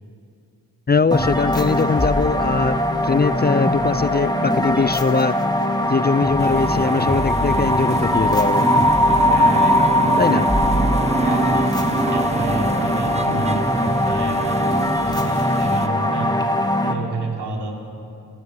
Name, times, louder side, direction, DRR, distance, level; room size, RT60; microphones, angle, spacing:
voice 1, 0.9-5.4 5.8-8.7 10.2-10.5, left 4 dB, 25° left, 0.4 m, -21 dB
sound 1, 1.1-16.9, left 1 dB, 10° left, 2.3 m, -20 dB
sound 2, 6.4-15.9, right 3 dB, 15° right, 0.6 m, -27 dB
voice 2, 9.3-10.5 11.2-11.6 12.1-14.8 15.2-16.3 16.8-17.7, right 2 dB, 75° right, 3.7 m, -30 dB
29.0 x 17.0 x 7.6 m
cardioid pair, 50°, 40 cm